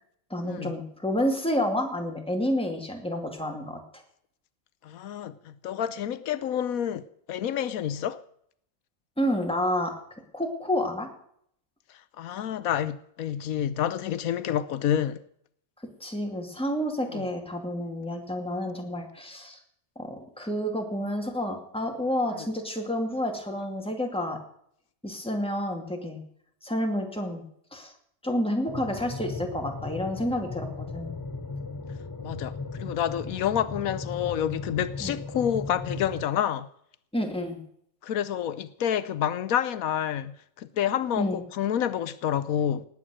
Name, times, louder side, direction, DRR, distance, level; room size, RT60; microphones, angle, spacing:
voice 1, 0.3-4.0 9.2-9.9 10.3-11.1 16.0-19.6 20.0-24.4 25.0-26.2 26.6-27.4 27.7-27.9 28.2-31.1 35.0-35.1 37.1-37.6 41.2-41.4, equal, 5° left, 2.3 m, -29 dB
voice 2, 4.8-8.2 12.2-15.2 17.1-17.3 32.2-36.7 38.0-42.9, left 9 dB, 80° left, 1.1 m, -28 dB
sound 1, 28.7-36.3, left 4 dB, 25° left, 0.4 m, -37 dB
19.0 x 8.6 x 6.3 m
omnidirectional pair, 1.5 m